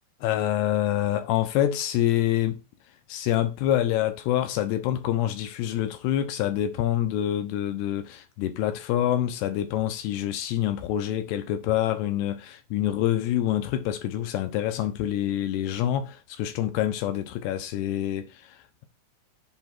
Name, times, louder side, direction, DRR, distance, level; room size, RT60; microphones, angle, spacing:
voice 1, 0.2-2.6 3.1-18.9, left 12 dB, 80° left, 2.6 m, -26 dB
7.9 x 3.4 x 4.3 m
omnidirectional pair, 5.1 m